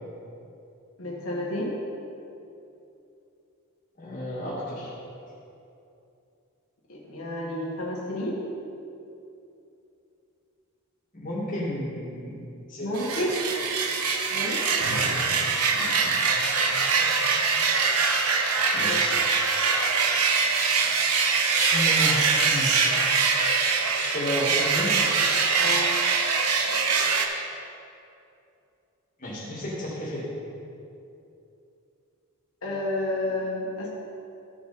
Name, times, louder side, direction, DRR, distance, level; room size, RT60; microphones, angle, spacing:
voice 1, 1.0-1.8 6.9-8.4 12.8-13.4 14.3-14.8 15.8-15.9 18.8-19.1 25.6-25.9 32.6-33.9, left 1 dB, 70° left, -4 dB, 1.5 m, -31 dB
voice 2, 4.0-5.0 11.1-13.1 14.7-17.5 18.7-19.2 21.7-23.0 24.1-25.0 29.2-30.3, equal, 35° left, -7 dB, 2.0 m, -33 dB
sound 1, 12.9-27.3, right 5 dB, 85° right, 0.8 m, -23 dB
14.0 x 4.9 x 4.2 m, 2.7 s
head